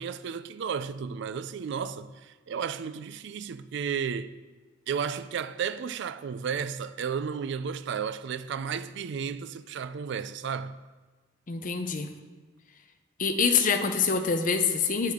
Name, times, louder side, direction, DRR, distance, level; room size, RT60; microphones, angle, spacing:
voice 1, 0.0-4.3 4.9-10.8, right 6 dB, 60° right, 0.4 m, -33 dB
voice 2, 11.5-12.1 13.2-15.1, left 5 dB, 45° left, 0.6 m, -25 dB
8.4 x 7.3 x 3.7 m
head